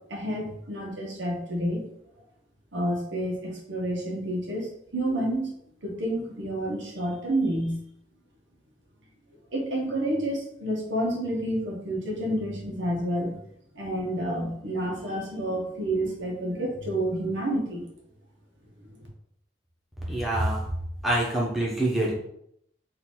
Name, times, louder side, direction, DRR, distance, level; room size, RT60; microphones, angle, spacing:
voice 1, 0.1-1.8 2.7-5.6 5.8-7.8 9.5-13.3 13.7-17.8, right 1 dB, 80° right, -1 dB, 1.3 m, -29 dB
voice 2, 20.1-20.6 21.0-22.1, right 1 dB, ahead, -5 dB, 1.2 m, -25 dB
3.9 x 2.9 x 4.5 m, 0.74 s
head